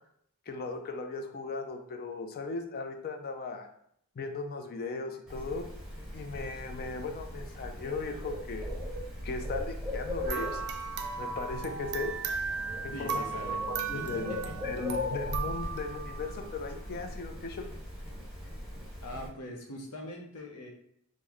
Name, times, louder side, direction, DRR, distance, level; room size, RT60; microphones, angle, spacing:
voice 1, 0.5-3.7 4.2-5.7 6.1-8.7 9.2-10.6 11.2-12.2 12.8-14.4 14.6-17.7, left 3 dB, 45° left, 5 dB, 0.4 m, -37 dB
Bird, 5.3-19.3, left 1 dB, 5° right, 0.9 m, -39 dB
sound 1, 10.3-16.7, right 5 dB, 50° right, 0.4 m, -36 dB
voice 2, 12.9-13.6 13.9-14.6 19.0-20.7, left 1 dB, 75° left, 2 dB, 0.7 m, -42 dB
3.1 x 2.0 x 3.7 m, 0.70 s
head